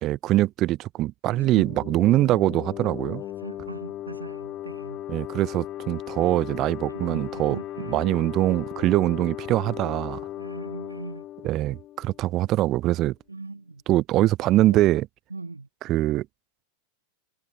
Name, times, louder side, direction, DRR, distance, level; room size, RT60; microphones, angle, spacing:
voice 1, 0.0-3.2 5.1-10.2 11.4-13.1 13.9-15.1 15.8-16.3, right 15 dB, 35° right, 1.7 m, -23 dB
sound 1, 1.3-12.7, left 13 dB, 35° left, 3.4 m, -37 dB
voice 2, 3.4-5.0 6.9-8.0 10.4-11.2 13.3-13.8 14.7-14.8 15.3-15.7, right 3 dB, 80° right, 2.7 m, -39 dB
figure-of-eight pair, 90°, 0 cm